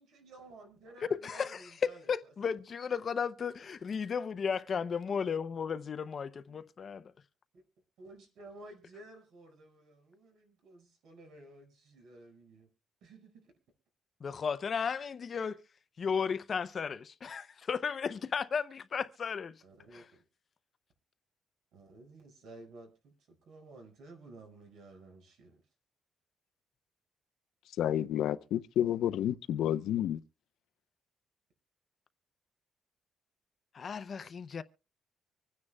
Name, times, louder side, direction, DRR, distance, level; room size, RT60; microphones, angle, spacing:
voice 1, 0.0-2.1 6.5-6.6 7.5-7.6 8.0-12.7 13.0-13.5 19.6-20.2 21.7-25.6, right 2 dB, 80° right, 5.0 m, -54 dB
voice 2, 1.1-7.1 14.2-15.6 16.0-19.6 19.9-20.0 33.7-34.6, left 6 dB, 35° left, 0.5 m, -34 dB
voice 3, 27.8-30.2, left 11 dB, 80° left, 0.6 m, -30 dB
25.0 x 9.8 x 2.2 m
cardioid pair, 175°, 0 cm